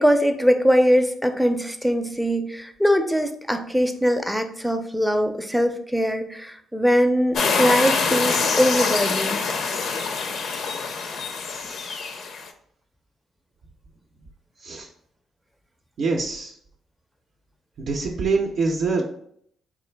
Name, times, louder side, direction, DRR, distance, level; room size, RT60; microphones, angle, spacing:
voice 1, 0.0-9.4, equal, ahead, 6 dB, 0.4 m, -21 dB
sound 1, 7.3-12.5, left 4 dB, 65° left, 0.5 m, -25 dB
voice 2, 16.0-16.5 17.8-19.0, right 4 dB, 60° right, 0 dB, 0.5 m, -24 dB
3.7 x 2.4 x 3.3 m, 0.67 s
cardioid pair, 90°, 0 cm